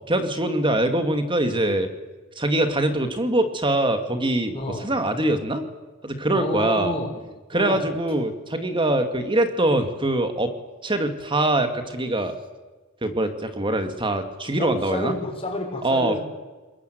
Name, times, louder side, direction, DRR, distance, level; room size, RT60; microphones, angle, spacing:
voice 1, 0.1-1.9 2.4-5.6 6.0-6.9 7.5-10.5 10.8-12.3 13.0-15.2 15.8-16.2, right 1 dB, 25° right, 7 dB, 2.2 m, -23 dB
voice 2, 4.5-4.9 6.3-7.1 7.5-7.8 14.6-16.2, left 1 dB, 25° left, 1 dB, 6.1 m, -30 dB
22.0 x 21.5 x 9.4 m, 1.2 s
head